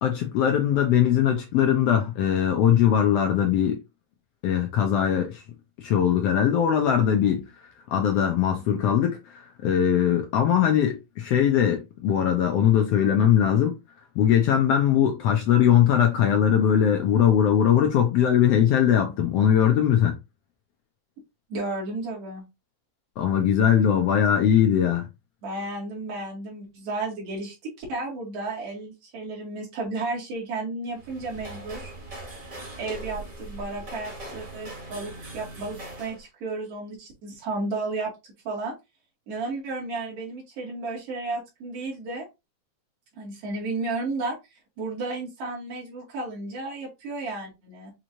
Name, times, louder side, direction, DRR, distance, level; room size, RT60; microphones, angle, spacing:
voice 1, 0.0-3.8 4.4-5.4 5.8-7.4 7.9-13.8 14.1-20.1 23.2-25.0, left 9 dB, 75° left, 1.4 m, -21 dB
voice 2, 21.5-22.4 25.4-31.9 32.8-38.1 38.4-38.7 39.3-42.3 43.2-44.4 44.8-47.9, right 2 dB, 55° right, 2.9 m, -33 dB
sound 1, 30.9-36.2, right 2 dB, 30° right, 2.0 m, -40 dB
6.2 x 3.0 x 2.6 m
omnidirectional pair, 3.5 m